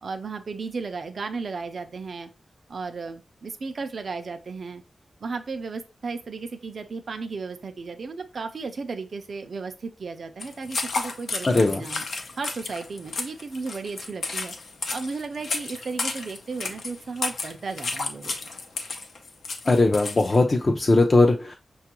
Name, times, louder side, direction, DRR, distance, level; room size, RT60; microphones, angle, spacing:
voice 1, 0.0-2.3 2.7-4.8 5.2-12.0 12.4-14.5 14.9-18.3, right 4 dB, 60° right, 7 dB, 0.4 m, -34 dB
sound 1, 10.4-20.4, left 3 dB, 80° left, 0.6 m, -32 dB
voice 2, 11.4-11.8 19.7-21.6, left 2 dB, 35° left, 2 dB, 0.4 m, -19 dB
5.8 x 2.3 x 2.9 m, 0.31 s
wide cardioid pair, 140°, 0 cm